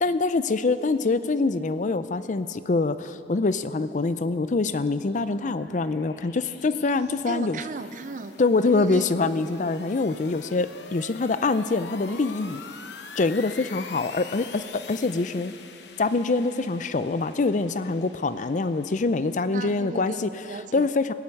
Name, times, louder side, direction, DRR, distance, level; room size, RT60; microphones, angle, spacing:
voice 1, 0.0-7.6 8.4-12.6 13.2-15.5 16.0-20.4 20.7-21.1, left 3 dB, 40° left, 13 dB, 0.4 m, -25 dB
sound 1, 4.7-20.0, left 5 dB, 65° left, 0.8 m, -46 dB
voice 2, 7.3-8.3 8.7-9.1 19.5-20.9, right 4 dB, 45° right, 13 dB, 0.5 m, -35 dB
16.0 x 8.6 x 9.0 m, 2.8 s
head